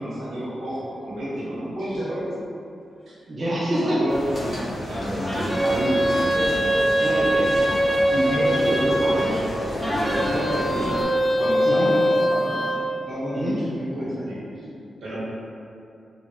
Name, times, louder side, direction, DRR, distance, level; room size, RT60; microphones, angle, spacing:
voice 1, 0.0-2.3 3.1-3.2 3.8-6.1 8.1-11.0 11.4-14.7 15.0-15.2, equal, 80° right, -9 dB, 1.0 m, -29 dB
voice 2, 3.3-4.0 7.0-7.6 10.1-10.4 11.7-11.9 13.3-13.6, equal, 35° right, -7 dB, 0.5 m, -26 dB
sound 1, 4.1-11.0, left 1 dB, 35° left, 0.8 m, -30 dB
sound 2, 5.2-9.3 9.8-12.8, equal, 5° left, 0.6 m, -22 dB
2.9 x 2.4 x 2.9 m, 2.6 s
supercardioid pair, 50°, 0 cm